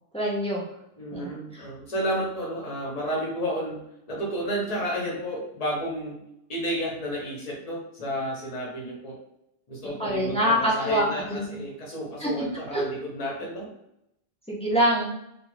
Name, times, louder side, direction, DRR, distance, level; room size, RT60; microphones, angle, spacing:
voice 1, 0.1-0.6 1.1-1.3 10.0-11.5 12.2-12.3 12.7-12.8 14.5-15.1, equal, 10° left, -6 dB, 0.4 m, -24 dB
voice 2, 1.0-3.8 4.1-6.2 6.5-9.2 9.7-13.7, equal, 40° left, -3 dB, 0.8 m, -31 dB
2.3 x 2.2 x 3.2 m, 0.82 s
omnidirectional pair, 1.1 m